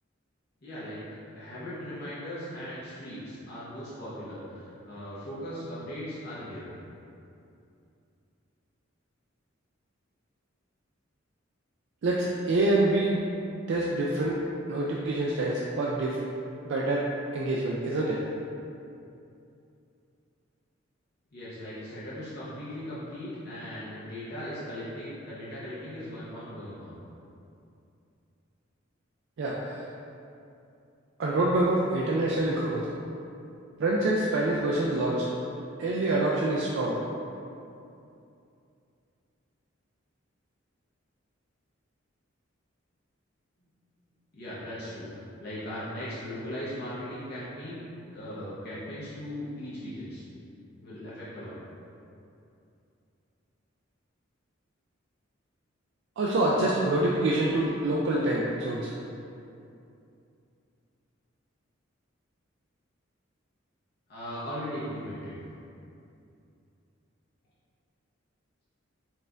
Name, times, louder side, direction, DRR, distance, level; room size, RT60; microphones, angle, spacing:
voice 1, 0.6-1.0 1.4-6.7 21.3-26.9 44.3-47.8 48.1-50.2 50.8-51.6 64.1-65.4, equal, 55° left, -10 dB, 0.8 m, -38 dB
voice 2, 12.0-13.1 13.7-14.4 14.7-16.2 16.6-17.1 17.3-18.2 29.4-29.8 31.2-32.9 33.8-35.3 35.8-37.0 56.2-58.9, right 2 dB, 65° right, -4 dB, 0.4 m, -26 dB
4.3 x 2.5 x 3.3 m, 2.6 s
head